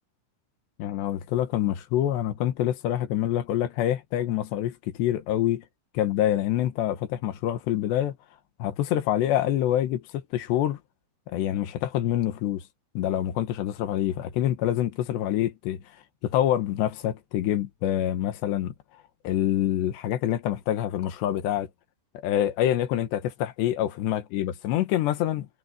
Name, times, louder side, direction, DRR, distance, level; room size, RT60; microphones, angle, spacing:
voice 1, 0.8-5.7 6.0-8.2 8.6-10.8 11.3-12.6 13.0-15.8 16.2-18.7 19.3-21.7 22.2-25.5, left 12 dB, 85° left, 3.7 m, -26 dB
omnidirectional pair, 4.9 m